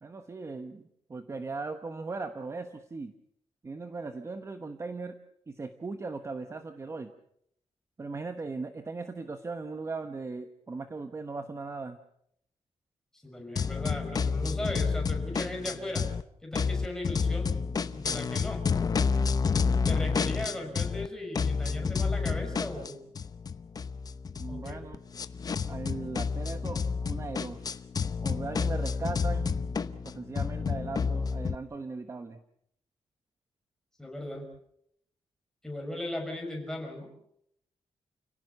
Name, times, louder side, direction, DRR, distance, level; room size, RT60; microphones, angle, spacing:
voice 1, 0.0-3.1 3.6-5.2 5.5-7.1 8.0-12.0 24.3-25.0 25.7-27.6 28.2-29.5 30.0-32.4, right 3 dB, 25° right, 8 dB, 1.1 m, -38 dB
voice 2, 13.1-16.1 16.4-17.5 17.9-18.6 19.9-23.0 24.5-24.8 34.0-34.5 35.6-37.1, left 1 dB, 5° left, 1 dB, 6.0 m, -37 dB
sound 1, 13.6-16.2 16.5-21.1 21.3-31.6, left 5 dB, 35° left, 0.8 m, -30 dB
29.5 x 17.5 x 6.9 m, 0.73 s
wide cardioid pair, 170°, 11 cm